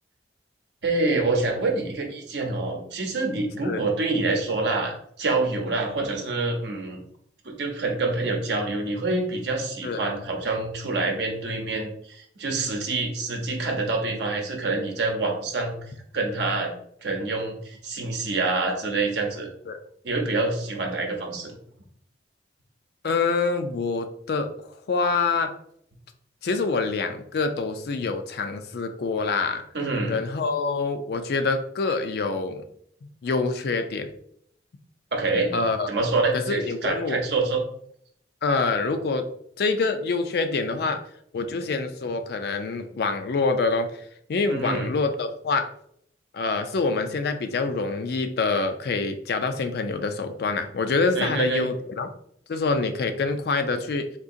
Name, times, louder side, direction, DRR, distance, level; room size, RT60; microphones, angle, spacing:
voice 1, 0.8-7.0 7.4-15.8 16.1-16.7 17.0-19.5 20.0-21.5 29.7-30.2 35.1-35.5 35.9-37.6 44.5-44.9 51.1-51.6, right 3 dB, 75° right, 1 dB, 0.8 m, -26 dB
voice 2, 23.0-25.5 26.4-29.6 30.1-32.6 33.2-34.1 35.5-35.9 36.3-37.2 38.4-39.3 39.6-41.0 41.3-43.9 44.3-45.7 46.3-52.1 52.5-54.1, left 4 dB, 60° left, 8 dB, 0.4 m, -26 dB
3.7 x 2.8 x 2.6 m, 0.67 s
head